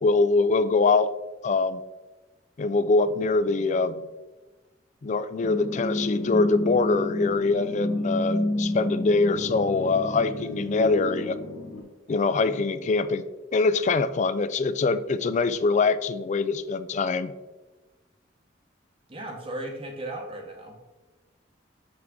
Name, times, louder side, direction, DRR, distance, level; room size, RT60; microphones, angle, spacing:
voice 1, 0.0-1.1 1.4-1.8 2.6-4.0 5.0-11.4 12.1-13.2 13.5-17.3, left 3 dB, 40° left, 14 dB, 0.4 m, -23 dB
sound 1, 5.4-11.8, left 1 dB, 80° left, 1.3 m, -30 dB
voice 2, 19.1-20.8, right 1 dB, 30° right, 1 dB, 0.9 m, -36 dB
6.3 x 6.0 x 3.6 m, 1.2 s
head